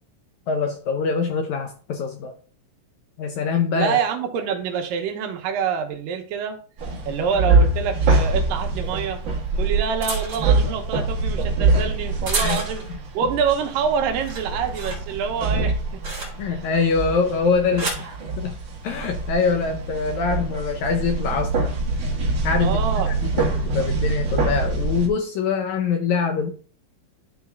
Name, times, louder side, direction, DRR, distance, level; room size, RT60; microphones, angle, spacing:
voice 1, 0.5-2.3 3.2-4.0 12.4-12.6 16.4-18.5 18.8-21.8 22.4-26.5, left 5 dB, 75° left, 1.8 m, -24 dB
voice 2, 3.8-6.6 7.1-9.2 9.6-12.8 13.1-16.6 18.0-18.1 22.6-23.1, right 6 dB, 80° right, 2.5 m, -26 dB
sound 1, 6.8-25.1, right 3 dB, 50° right, 1.5 m, -24 dB
sound 2, 9.3-13.0 13.5-13.8 14.1-16.7 17.4-18.1 19.0-19.3, right 3 dB, 30° right, 2.8 m, -30 dB
11.5 x 3.9 x 3.4 m
omnidirectional pair, 4.0 m